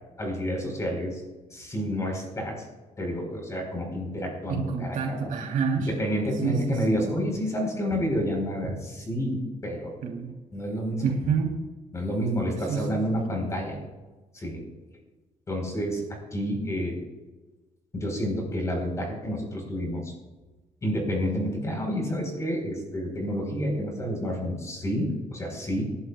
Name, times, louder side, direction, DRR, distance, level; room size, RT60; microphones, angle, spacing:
voice 1, 0.2-1.2 1.5-2.6 3.0-5.3 5.8-9.9 10.5-11.1 11.9-13.8 14.3-14.6 15.5-16.0 16.3-17.0 17.9-20.1 20.8-25.8, equal, 20° left, 0 dB, 4.5 m, -29 dB
voice 2, 4.5-5.9 6.4-7.2 10.0-10.3 11.0-11.6 12.7-13.0, right 5 dB, 75° right, 0 dB, 3.4 m, -28 dB
28.0 x 11.5 x 2.4 m, 1.2 s
cardioid pair, 170°, 14 cm